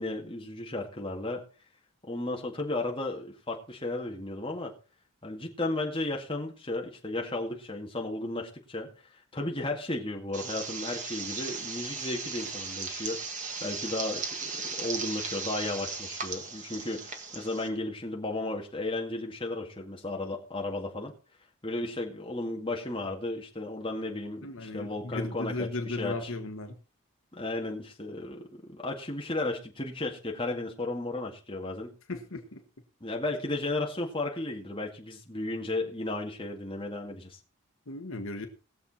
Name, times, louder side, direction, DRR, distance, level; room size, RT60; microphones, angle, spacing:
voice 1, 0.0-1.4 2.1-4.7 5.2-8.9 9.3-13.2 13.6-21.1 21.6-26.3 27.3-31.9 33.0-37.4, left 2 dB, 25° left, 0 dB, 2.1 m, -34 dB
sound 1, 10.3-17.7, right 4 dB, 35° right, 1.7 m, -37 dB
voice 2, 24.4-26.7 32.1-32.6 37.9-38.5, left 2 dB, 65° left, 6 dB, 1.4 m, -36 dB
19.5 x 7.2 x 4.3 m, 0.36 s
head